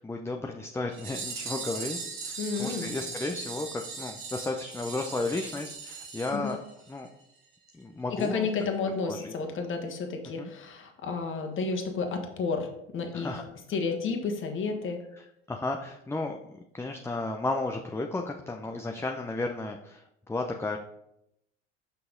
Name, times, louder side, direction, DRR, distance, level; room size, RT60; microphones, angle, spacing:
voice 1, 0.0-6.6 6.9-7.1 7.7-8.5 9.1-9.3 10.4-10.5 13.1-13.4 15.5-20.8, left 2 dB, 10° left, 3 dB, 0.6 m, -33 dB
sound 1, 0.9-7.1 7.4-7.5 7.7-7.8 8.2-8.3 8.6-8.7, right 5 dB, 80° right, 2.4 m, -39 dB
voice 2, 2.4-2.9 6.3-6.5 8.1-13.3 13.7-15.0, left 4 dB, 40° left, 4 dB, 1.4 m, -31 dB
6.0 x 5.7 x 3.9 m, 0.80 s
hypercardioid pair, 75°, 31 cm